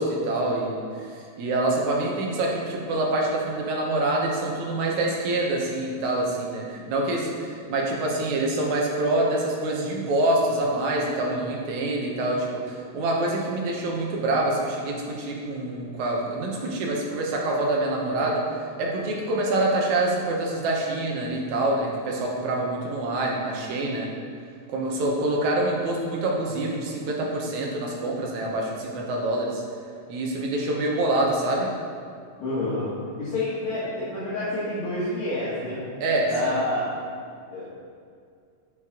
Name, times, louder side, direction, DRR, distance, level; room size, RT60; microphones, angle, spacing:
voice 1, 0.0-18.5 18.8-24.1 24.7-29.6 30.1-31.7 36.0-36.5, right 2 dB, 75° right, -1 dB, 2.5 m, -26 dB
voice 2, 32.4-32.9 33.2-35.8 36.3-36.9 37.5-37.7, left 1 dB, 65° left, -10 dB, 3.0 m, -28 dB
9.0 x 8.5 x 3.8 m, 2.2 s
omnidirectional pair, 3.4 m